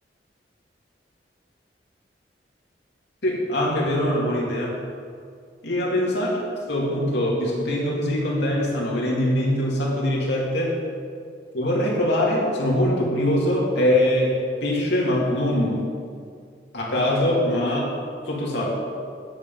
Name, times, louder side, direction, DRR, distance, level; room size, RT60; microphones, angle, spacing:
voice 1, 3.2-4.7 5.6-6.4 6.7-10.7 11.5-15.8 16.7-17.9 18.2-18.7, left 1 dB, 70° left, -3 dB, 2.4 m, -23 dB
10.0 x 7.4 x 5.4 m, 2.2 s
head